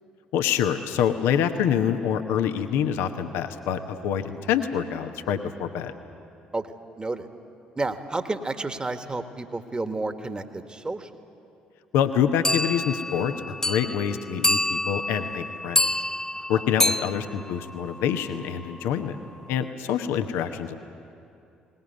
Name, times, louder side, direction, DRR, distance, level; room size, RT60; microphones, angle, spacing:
voice 1, 0.3-5.9 11.9-13.3 13.6-15.9 16.5-19.2 19.5-20.7, left 8 dB, 65° left, 8 dB, 1.1 m, -26 dB
voice 2, 6.5-7.3 7.7-11.1 16.3-16.6, right 2 dB, 20° right, 8 dB, 1.6 m, -31 dB
sound 1, 12.4-18.3, left 2 dB, 10° left, 0.6 m, -27 dB
21.0 x 19.5 x 9.6 m, 2.6 s
figure-of-eight pair, 45°, 4 cm